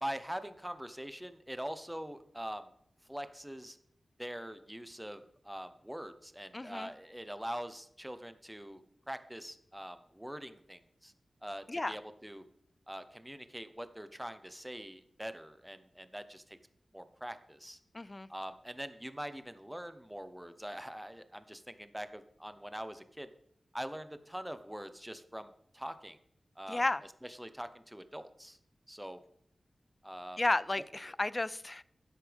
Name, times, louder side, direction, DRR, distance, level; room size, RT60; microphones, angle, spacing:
voice 1, 0.0-2.7 3.1-3.8 4.2-11.1 11.4-12.4 12.9-16.6 16.9-17.8 18.3-23.3 23.7-26.2 26.6-26.8 27.2-28.6 28.9-29.2 30.0-30.4, equal, 5° right, 10 dB, 0.9 m, -43 dB
voice 2, 6.5-6.9 11.7-12.0 17.9-18.3 26.7-27.0 30.4-31.8, left 2 dB, 30° left, 18 dB, 0.4 m, -32 dB
12.5 x 10.0 x 3.5 m, 0.71 s
wide cardioid pair, 70°, 0 cm